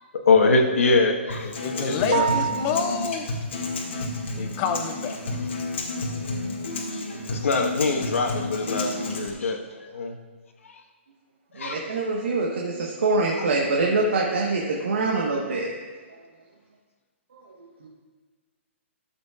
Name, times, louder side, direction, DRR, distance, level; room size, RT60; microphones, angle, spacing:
voice 1, 0.2-2.3 7.3-10.2 10.7-10.8 11.5-11.9 13.4-13.5, left 3 dB, 85° left, 4 dB, 1.3 m, -23 dB
Acoustic guitar, 1.3-9.3, left 2 dB, 65° left, 1.9 m, -31 dB
voice 2, 1.6-3.3 4.4-5.2, left 6 dB, 10° left, 6 dB, 0.3 m, -28 dB
sound 1, 2.1-3.2, right 8 dB, 45° right, 1.1 m, -27 dB
voice 3, 11.5-15.7 17.8-17.9, right 3 dB, 65° right, -2 dB, 1.3 m, -24 dB
14.0 x 7.2 x 2.4 m, 1.5 s
hypercardioid pair, 180°, 7 cm